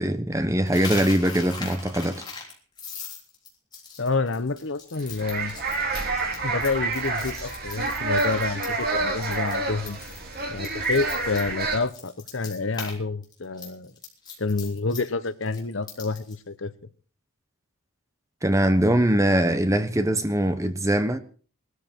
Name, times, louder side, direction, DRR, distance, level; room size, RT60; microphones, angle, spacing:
voice 1, 0.0-2.2 18.4-21.2, right 1 dB, 15° right, 0.9 m, -22 dB
Coin (dropping), 0.7-8.9 9.2-9.5 9.8-13.0 13.2-16.4, left 5 dB, 20° left, 3.4 m, -39 dB
voice 2, 4.0-5.5 6.4-10.0 10.5-13.9 14.4-16.7, left 3 dB, 60° left, 0.9 m, -28 dB
sound 1, 5.0-11.8, right 3 dB, 45° right, 3.4 m, -28 dB
19.0 x 13.0 x 4.5 m
head